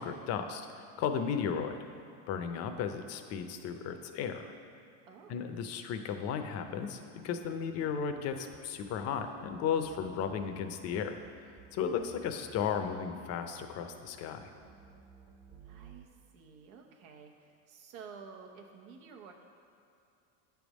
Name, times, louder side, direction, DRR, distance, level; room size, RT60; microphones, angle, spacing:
voice 1, 0.0-1.8 2.3-4.5 5.3-11.2 11.7-14.5, left 7 dB, 40° left, 7 dB, 0.6 m, -35 dB
sound 1, 7.2-16.0, right 3 dB, 30° right, 0.9 m, -57 dB
voice 2, 15.6-16.1 16.3-19.3, right 6 dB, 85° right, 2 dB, 1.0 m, -51 dB
9.0 x 3.5 x 6.2 m, 2.7 s
supercardioid pair, 135°, 40 cm